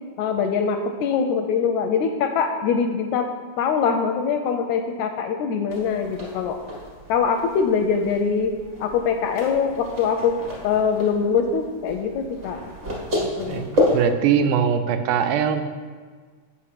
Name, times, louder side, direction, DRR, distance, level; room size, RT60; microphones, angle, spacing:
voice 1, 0.2-3.3 3.6-6.6 7.1-8.5 8.8-10.3 10.6-12.6 13.2-13.6, left 6 dB, 80° left, 5 dB, 1.7 m, -23 dB
sound 1, 5.7-14.1, left 1 dB, 30° right, 1.5 m, -30 dB
voice 2, 13.4-15.6, right 7 dB, 85° right, 8 dB, 2.1 m, -22 dB
8.1 x 5.2 x 5.8 m, 1.5 s
omnidirectional pair, 3.6 m